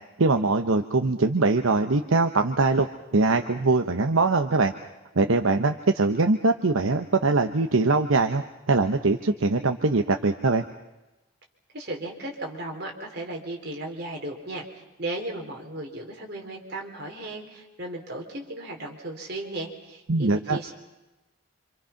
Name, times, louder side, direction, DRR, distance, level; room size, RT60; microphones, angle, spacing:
voice 1, 0.2-2.9 3.1-4.7 5.2-8.4 8.7-10.6 20.1-20.6, right 3 dB, 75° right, 6 dB, 1.0 m, -22 dB
voice 2, 11.7-20.7, right 2 dB, 50° right, 1 dB, 3.9 m, -36 dB
27.0 x 26.5 x 5.8 m, 1.0 s
head